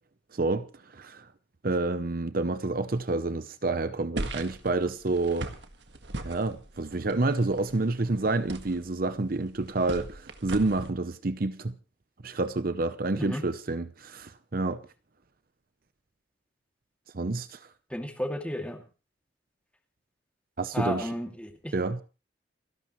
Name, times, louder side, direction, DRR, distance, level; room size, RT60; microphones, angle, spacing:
voice 1, 0.3-1.3 1.6-5.5 6.2-11.7 12.2-14.8 17.1-17.6 20.6-21.1 21.7-22.0, right 2 dB, 50° right, 0.8 m, -29 dB
sound 1, 4.2-10.9, right 2 dB, 75° right, 1.7 m, -39 dB
voice 2, 17.9-18.8 20.7-21.7, equal, 5° left, 2.5 m, -33 dB
29.0 x 11.5 x 3.2 m
head